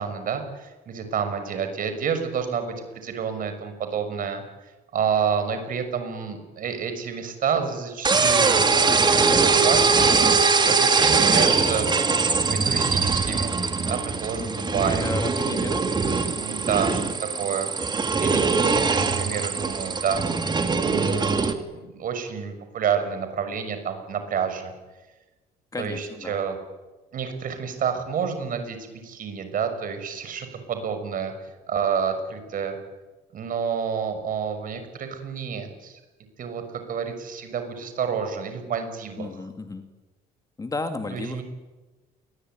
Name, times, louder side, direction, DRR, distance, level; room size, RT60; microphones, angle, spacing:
voice 1, 0.0-4.4 4.9-12.2 12.5-15.0 16.4-17.0 17.4-20.2 20.8-24.7 25.8-26.6 27.1-31.3 31.7-32.8 33.3-36.0 36.4-39.3 41.1-41.4, right 7 dB, 55° right, 8 dB, 6.3 m, -29 dB
sound 1, 8.0-21.5, right 4 dB, 25° right, 2.6 m, -22 dB
voice 2, 14.4-16.3 16.8-17.0 17.3-17.5 17.8-18.7 25.7-26.4 39.2-39.9 40.6-41.4, left 3 dB, 20° left, 7 dB, 2.5 m, -34 dB
28.5 x 22.0 x 9.5 m, 1.2 s
cardioid pair, 110°, 17 cm